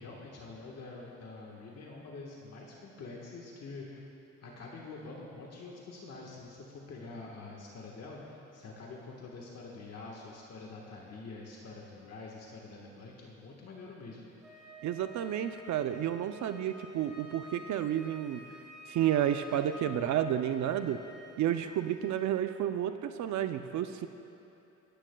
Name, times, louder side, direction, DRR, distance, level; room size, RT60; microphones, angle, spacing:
voice 1, 0.0-4.1 4.4-14.2, left 3 dB, 55° left, -2 dB, 1.5 m, -46 dB
Wind instrument woodwind instrument, 14.4-22.3, left 1 dB, ahead, 3.0 m, -50 dB
voice 2, 14.8-18.4 18.9-21.0 21.4-24.1, right 10 dB, 70° right, 9 dB, 0.6 m, -31 dB
25.0 x 10.0 x 2.3 m, 2.9 s
cardioid pair, 90°, 30 cm